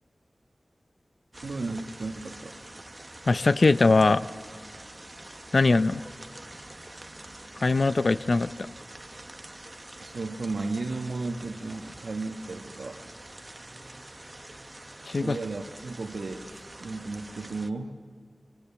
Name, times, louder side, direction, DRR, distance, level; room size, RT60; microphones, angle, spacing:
sound 1, 1.3-17.7, right 1 dB, 30° right, 1.0 m, -46 dB
voice 1, 1.4-2.6 9.9-13.0 15.2-18.0, right 3 dB, 90° right, 5 dB, 1.5 m, -34 dB
voice 2, 3.3-4.3 5.5-6.0 7.6-8.7 15.0-15.4, left 3 dB, 65° left, 13 dB, 0.6 m, -21 dB
25.0 x 25.0 x 7.2 m, 2.2 s
wide cardioid pair, 60°, 0 cm